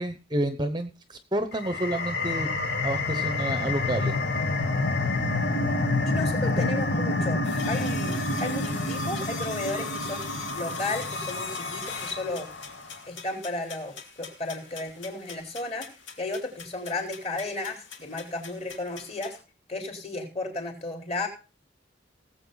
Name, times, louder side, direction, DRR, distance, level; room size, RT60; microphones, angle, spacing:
voice 1, 0.0-2.5 2.8-4.2 8.2-8.3, right 1 dB, 20° right, 9 dB, 0.9 m, -30 dB
sound 1, 1.5-12.7, left 2 dB, 60° left, 1.8 m, -28 dB
voice 2, 6.0-10.3 10.5-12.5 13.1-15.9 16.2-19.4 19.7-21.3, left 2 dB, 35° left, 1 dB, 4.0 m, -34 dB
sound 2, 7.4-19.4, left 6 dB, 75° left, 2.6 m, -42 dB
19.0 x 7.8 x 4.0 m, 0.33 s
head